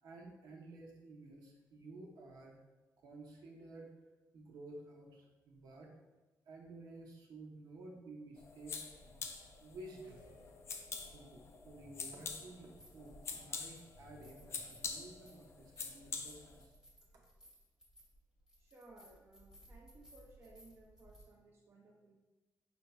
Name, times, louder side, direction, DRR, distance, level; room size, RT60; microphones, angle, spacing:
voice 1, 0.0-2.6 3.0-3.9 4.3-5.9 6.5-10.2 11.1-16.7, right 2 dB, 70° right, -1 dB, 0.8 m, -53 dB
a small orange bic lighter, 8.4-16.7, left 5 dB, 40° left, 0.4 m, -46 dB
sound 1, 10.0-11.6, left 2 dB, 85° left, 0.9 m, -63 dB
sound 2, 10.9-11.0 12.5-13.5 13.7-21.2, right 1 dB, 10° right, 1.0 m, -61 dB
voice 2, 18.6-22.2, right 2 dB, 35° right, -2 dB, 0.5 m, -60 dB
5.0 x 4.0 x 2.3 m, 1.2 s
wide cardioid pair, 170°, 7 cm